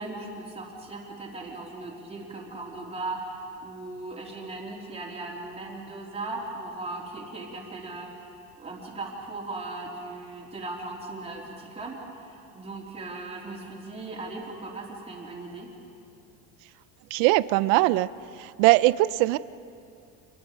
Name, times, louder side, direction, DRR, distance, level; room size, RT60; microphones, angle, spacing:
voice 1, 0.0-15.7, right 2 dB, 20° right, -2 dB, 3.5 m, -38 dB
voice 2, 17.1-18.1 18.4-19.4, right 18 dB, 80° right, 16 dB, 0.6 m, -21 dB
28.5 x 23.0 x 5.2 m, 2.5 s
cardioid pair, 155°, 33 cm